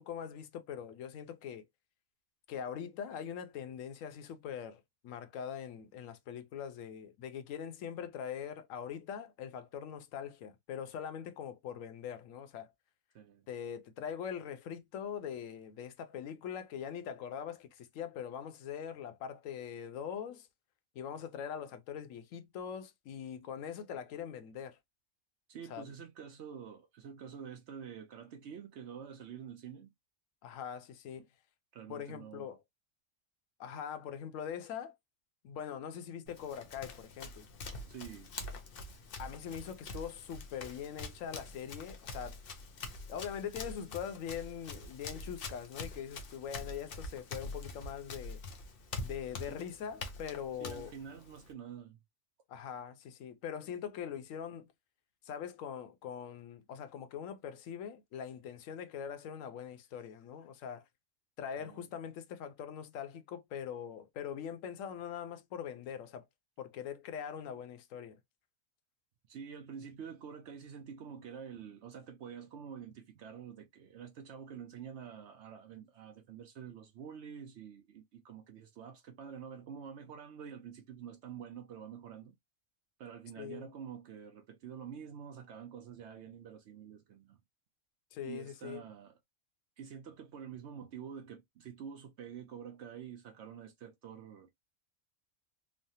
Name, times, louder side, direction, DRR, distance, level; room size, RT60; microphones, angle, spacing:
voice 1, 0.0-1.6 2.5-12.7 13.5-20.5 20.9-24.8 25.7-25.9 30.4-31.3 31.9-32.6 33.6-34.9 35.4-37.5 39.2-42.4 43.1-48.4 49.0-50.9 52.5-54.7 55.2-60.8 61.4-66.2 66.6-68.2 83.4-83.7 88.1-88.8, left 8 dB, 75° left, 1.0 m, -42 dB
voice 2, 25.5-29.9 31.7-32.6 37.9-38.3 49.5-49.6 50.6-52.0 61.6-61.9 69.3-82.3 83.0-87.4 88.2-89.2 89.8-94.5, right 7 dB, 65° right, 0.8 m, -47 dB
Run, 36.3-51.5, left 3 dB, 55° left, 0.8 m, -45 dB
3.2 x 2.0 x 2.6 m
omnidirectional pair, 1.4 m